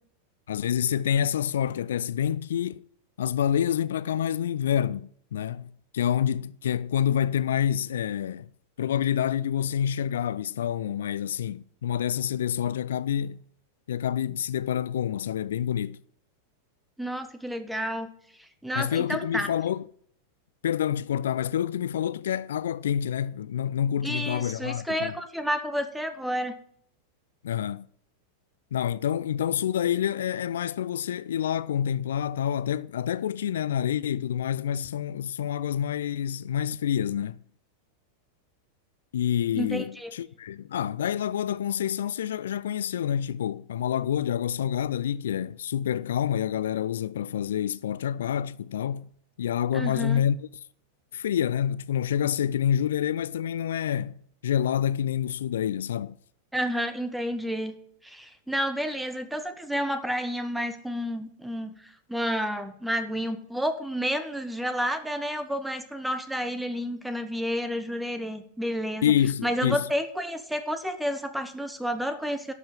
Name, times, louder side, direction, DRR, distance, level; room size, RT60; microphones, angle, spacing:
voice 1, 0.5-2.8 3.2-8.5 8.8-13.4 13.9-16.0 18.8-19.8 20.6-25.1 27.4-27.9 28.7-37.4 39.1-49.1 49.4-50.5 51.1-54.1 54.4-56.2 69.0-69.8, left 9 dB, 60° left, 0.3 m, -27 dB
voice 2, 17.0-18.1 18.4-19.5 24.0-26.6 39.5-40.1 49.7-50.2 56.5-57.8 58.0-69.1 69.4-72.5, equal, 5° right, 1.0 m, -30 dB
12.0 x 5.5 x 7.2 m
figure-of-eight pair, 90°, 0 cm